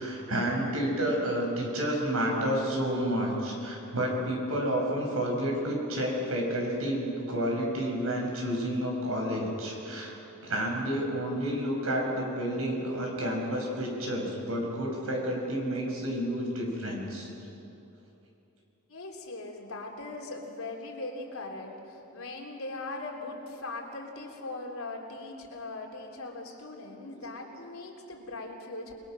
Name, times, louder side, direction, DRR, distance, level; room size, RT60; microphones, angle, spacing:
voice 1, 0.0-10.1 10.4-17.3, equal, 85° right, 0 dB, 6.0 m, -30 dB
voice 2, 18.9-28.9, left 2 dB, 80° left, 0 dB, 3.5 m, -40 dB
29.0 x 21.5 x 6.4 m, 2.8 s
head